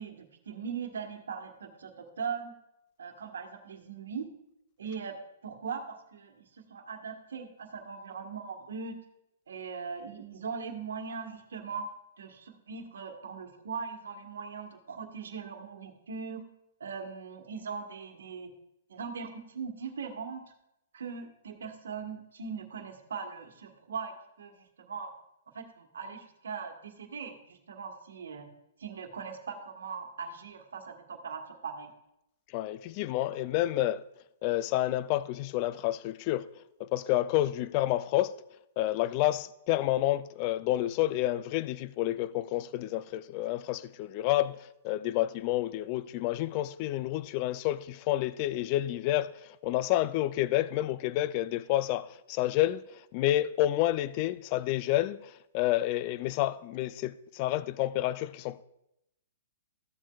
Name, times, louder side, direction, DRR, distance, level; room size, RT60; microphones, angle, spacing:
voice 1, 0.0-2.5 3.0-4.3 4.8-5.2 5.4-6.3 6.7-8.9 9.5-11.9 12.2-16.4 16.8-18.5 18.9-20.4 20.9-25.1 25.5-28.5 28.8-31.9, right 5 dB, 80° right, 1.4 m, -40 dB
voice 2, 32.5-34.0 34.4-36.5 36.8-38.3 38.8-52.8 53.1-58.6, left 14 dB, 40° left, 0.4 m, -29 dB
14.0 x 7.3 x 2.3 m
hypercardioid pair, 130°, 0 cm